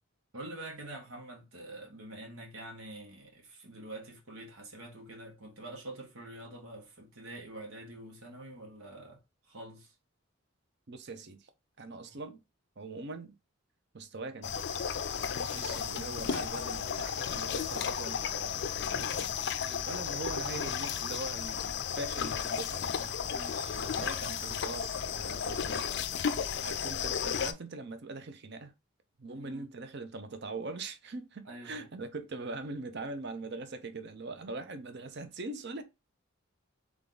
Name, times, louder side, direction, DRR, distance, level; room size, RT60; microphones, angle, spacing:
voice 1, 0.3-9.2 9.5-9.9 12.0-12.2 15.3-15.6 19.6-19.9 23.2-23.7 29.4-29.6 31.4-31.9, right 1 dB, 85° right, 1.6 m, -46 dB
voice 2, 10.9-11.4 11.8-12.4 12.8-13.3 13.9-14.9 15.5-19.3 19.8-23.1 23.7-25.9 26.6-28.7 29.2-35.8, right 3 dB, 55° right, 0.7 m, -42 dB
sound 1, 14.4-27.5, left 7 dB, 55° left, 0.4 m, -34 dB
3.6 x 3.5 x 3.9 m
head